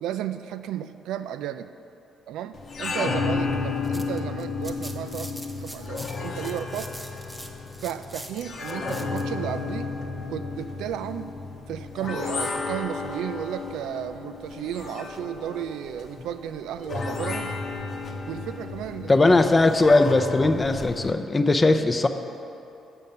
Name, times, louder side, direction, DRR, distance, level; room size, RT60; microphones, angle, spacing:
voice 1, 0.0-1.7 2.3-6.9 7.8-9.9 10.3-11.3 11.7-17.5 18.3-19.3, right 10 dB, 85° right, 10 dB, 0.3 m, -34 dB
sound 1, 2.5-21.1, left 4 dB, 50° left, 0.9 m, -33 dB
sound 2, 3.7-9.2, right 1 dB, 10° right, 0.7 m, -43 dB
voice 2, 19.1-22.1, left 2 dB, 25° left, 8 dB, 0.5 m, -19 dB
7.8 x 5.4 x 7.3 m, 2.8 s
cardioid pair, 90°, 0 cm